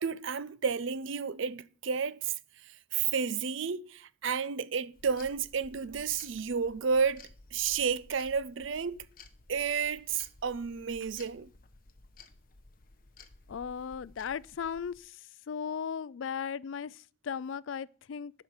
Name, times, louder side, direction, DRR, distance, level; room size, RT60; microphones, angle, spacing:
voice 1, 0.0-2.3 2.9-9.0 9.5-11.5, right 6 dB, 70° right, 0.5 m, -31 dB
sound 1, 4.9-15.0, left 3 dB, 45° left, 0.9 m, -55 dB
voice 2, 13.5-15.2 15.5-18.3, left 7 dB, 70° left, 0.4 m, -37 dB
11.5 x 5.7 x 6.5 m
head